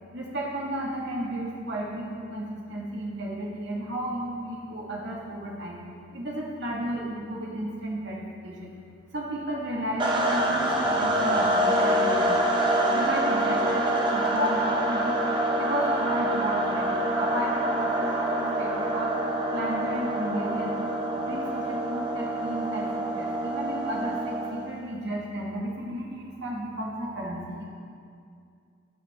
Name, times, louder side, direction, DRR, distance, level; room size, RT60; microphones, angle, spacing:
voice 1, 0.1-5.8 6.1-8.7 9.1-12.6 12.9-15.2 15.5-19.1 19.5-20.8 21.2-27.6, equal, 60° right, -3 dB, 1.9 m, -33 dB
sound 1, 9.7-12.7, equal, 90° right, 3.3 m, -43 dB
sound 2, 10.0-24.7, right 1 dB, 25° right, 1.2 m, -26 dB
14.5 x 12.0 x 3.6 m, 2.4 s
head